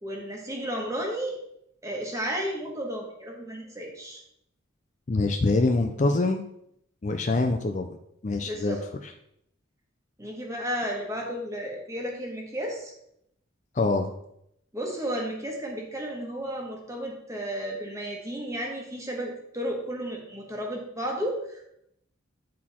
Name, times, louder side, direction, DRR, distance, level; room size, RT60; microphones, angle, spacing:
voice 1, 0.0-1.4 1.8-4.2 8.4-8.8 10.2-12.9 14.7-21.6, equal, 15° right, 0 dB, 1.4 m, -33 dB
voice 2, 5.1-6.4 7.0-8.0 8.2-8.8 13.8-14.1, left 2 dB, 35° left, 6 dB, 0.4 m, -24 dB
9.3 x 4.2 x 4.3 m, 0.76 s
head